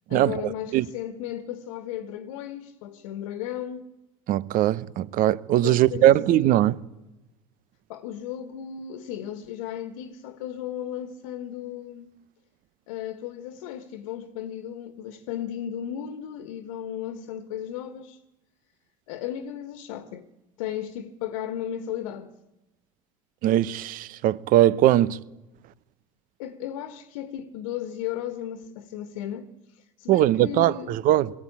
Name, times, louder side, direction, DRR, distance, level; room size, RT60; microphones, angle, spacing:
voice 1, 0.1-3.9 5.6-6.6 7.9-12.1 12.9-18.2 19.1-20.3 20.6-22.3 26.4-30.9, left 10 dB, 75° left, 1.4 m, -35 dB
voice 2, 4.3-6.7 23.4-25.2 30.1-31.3, right 13 dB, 50° right, 0.9 m, -20 dB
21.5 x 16.0 x 8.7 m
hypercardioid pair, 90°, 18 cm